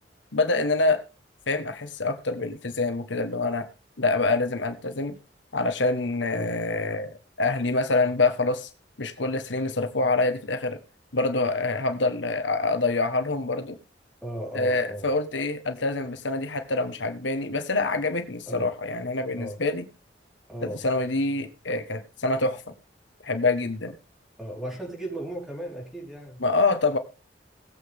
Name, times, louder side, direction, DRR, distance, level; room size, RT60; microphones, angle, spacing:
voice 1, 0.3-1.0 1.5-3.7 4.0-5.2 5.5-8.7 9.0-10.8 11.1-13.8 14.5-19.9 20.6-22.6 23.2-23.9 26.4-27.0, left 3 dB, 90° left, 8 dB, 1.4 m, -26 dB
voice 2, 14.2-15.1 18.5-18.7 19.4-19.6 20.5-20.8 24.4-26.4, right 1 dB, ahead, -1 dB, 4.5 m, -36 dB
18.0 x 8.2 x 3.7 m, 0.30 s
head